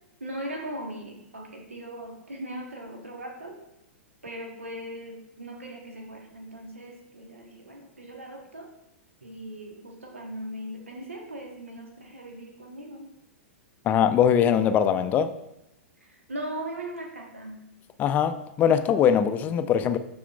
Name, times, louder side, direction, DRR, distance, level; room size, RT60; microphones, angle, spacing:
voice 1, 0.2-3.6 4.2-8.7 9.2-13.1 16.0-17.6, right 1 dB, 80° right, 1.2 m, -39 dB
voice 2, 13.8-15.3 18.0-20.0, left 8 dB, 25° left, 0.5 m, -22 dB
13.0 x 4.3 x 2.4 m
figure-of-eight pair, 105°, 7 cm